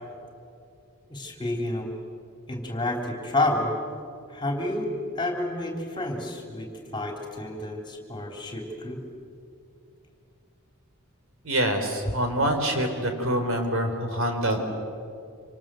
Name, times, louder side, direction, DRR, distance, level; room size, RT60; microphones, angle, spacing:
voice 1, 1.1-1.9 2.5-3.7 4.3-4.9 5.2-9.0, left 2 dB, 20° left, 2 dB, 3.5 m, -29 dB
voice 2, 11.4-14.6, right 1 dB, 65° right, 5 dB, 3.7 m, -25 dB
27.0 x 26.5 x 7.7 m, 2.4 s
head